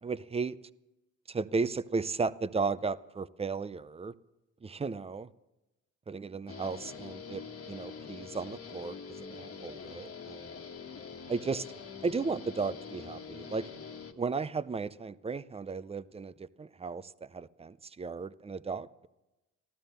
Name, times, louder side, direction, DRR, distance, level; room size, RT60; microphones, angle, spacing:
voice 1, 0.0-0.6 1.3-4.1 4.6-5.3 6.1-10.5 11.3-11.7 12.0-13.7 14.2-19.1, right 4 dB, 20° right, 0.5 m, -35 dB
Guitar, 6.5-14.1, left 6 dB, 50° left, 1.5 m, -45 dB
15.0 x 13.0 x 6.6 m
cardioid pair, 90°, 30 cm